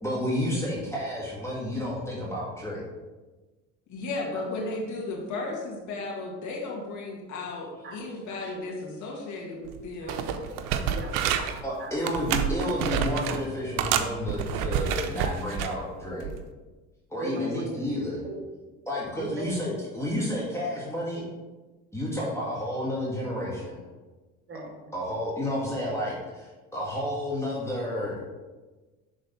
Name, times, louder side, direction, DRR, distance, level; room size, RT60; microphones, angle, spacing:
voice 1, 0.0-2.8 11.6-16.3 17.1-18.2 18.9-21.3 21.9-23.8 24.9-28.1, left 1 dB, 10° left, -6 dB, 2.1 m, -31 dB
voice 2, 3.9-10.3, left 2 dB, 55° left, -1 dB, 2.1 m, -35 dB
sound 1, 9.7-9.8 10.1-11.6 12.0-13.4 13.8-15.7 16.2-16.4, right 8 dB, 70° right, 0.7 m, -28 dB
voice 3, 10.1-10.5 10.8-11.4 11.8-12.0 17.2-17.8 18.2-18.4 19.2-19.5 24.5-24.7, right 2 dB, 35° right, 1 dB, 1.8 m, -38 dB
6.4 x 3.9 x 5.3 m, 1.2 s
supercardioid pair, 85°, 35 cm